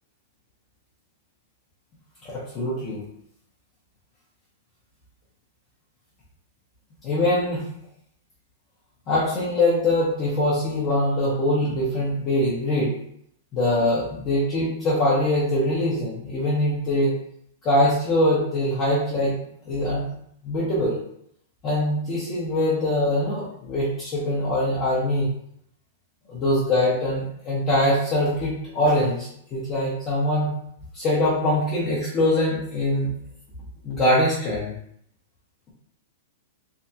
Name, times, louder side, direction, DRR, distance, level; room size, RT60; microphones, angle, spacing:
voice 1, 2.2-3.0 7.0-7.7 9.1-12.9 13.5-17.2 17.6-19.4 19.7-20.0 20.4-21.0 21.6-25.3 26.3-30.5 30.9-33.1 33.8-34.7, left 1 dB, 20° left, -9 dB, 1.0 m, -23 dB
3.5 x 3.3 x 2.8 m, 0.69 s
supercardioid pair, 170°, 0 cm